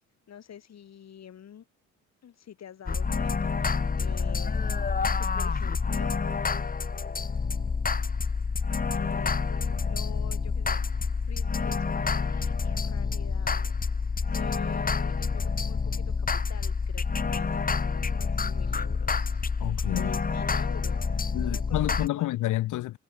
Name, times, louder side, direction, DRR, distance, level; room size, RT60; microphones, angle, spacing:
voice 1, 0.3-1.7 2.2-6.7 8.9-13.7 14.3-19.5 19.9-22.4, left 9 dB, 60° left, 5.0 m, -47 dB
sound 1, 2.9-22.1, left 5 dB, 30° left, 2.0 m, -28 dB
voice 2, 19.6-20.1 21.3-23.0, left 16 dB, 90° left, 3.2 m, -29 dB
cardioid pair, 90°, 30 cm